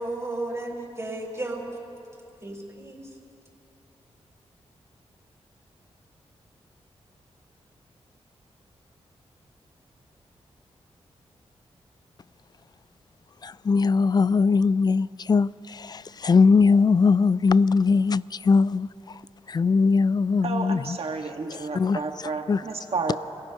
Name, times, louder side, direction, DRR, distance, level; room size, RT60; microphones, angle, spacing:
voice 1, 0.0-1.6 2.4-3.0, right 2 dB, 25° right, 4.7 m, -33 dB
voice 2, 13.4-18.9 19.5-21.0 21.5-22.0 22.5-22.6, left 4 dB, 35° left, 0.3 m, -21 dB
voice 3, 20.4-23.2, right 4 dB, 60° right, 1.6 m, -31 dB
28.5 x 16.5 x 2.9 m
cardioid pair, 60°, 11 cm